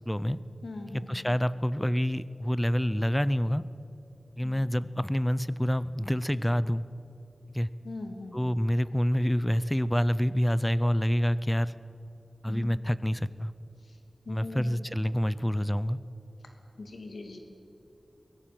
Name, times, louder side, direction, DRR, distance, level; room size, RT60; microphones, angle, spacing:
voice 1, 0.1-0.4 0.9-3.6 4.4-6.9 7.5-7.7 8.3-11.7 12.4-13.5 14.3-16.0, equal, 10° left, 17 dB, 0.6 m, -27 dB
voice 2, 0.6-1.4 7.8-8.5 12.5-12.7 13.8-14.0 14.3-14.8 16.8-17.4, left 2 dB, 80° left, 4 dB, 2.8 m, -41 dB
23.5 x 17.5 x 7.8 m, 2.9 s
wide cardioid pair, 85°, 0 cm